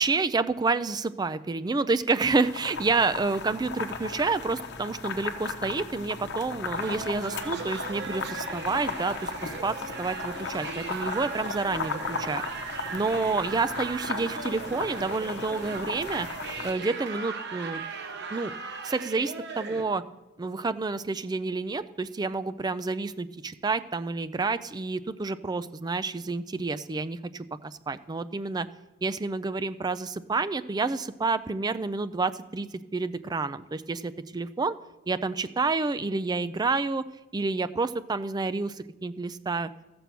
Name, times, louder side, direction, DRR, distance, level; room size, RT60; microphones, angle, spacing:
voice 1, 0.0-12.4 12.9-16.3 16.6-17.8 18.3-18.5 18.8-20.0 20.4-28.7 29.0-32.7 32.9-34.8 35.1-37.0 37.3-39.7, right 3 dB, 20° right, 13 dB, 0.3 m, -29 dB
sound 1, 2.5-16.7, left 4 dB, 55° left, 1.0 m, -36 dB
sound 2, 6.7-19.8, right 4 dB, 50° right, 1.0 m, -38 dB
14.0 x 6.9 x 5.9 m, 1.0 s
head